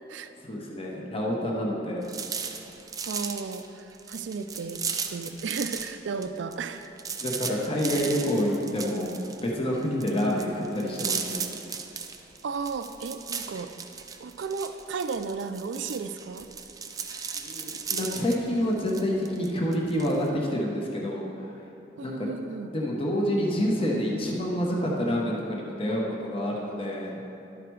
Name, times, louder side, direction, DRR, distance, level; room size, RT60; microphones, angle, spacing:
voice 1, 0.4-2.1 7.2-9.1 9.4-11.5 17.3-21.6 22.0-22.3 22.7-27.2, equal, 30° left, -2 dB, 1.0 m, -28 dB
sound 1, 2.0-6.0 6.2-20.3, right 6 dB, 20° right, 0.4 m, -36 dB
voice 2, 3.0-6.9 12.4-13.7 14.2-16.5 22.0-22.7, right 5 dB, 90° right, 10 dB, 0.4 m, -34 dB
11.5 x 4.9 x 4.6 m, 2.8 s
head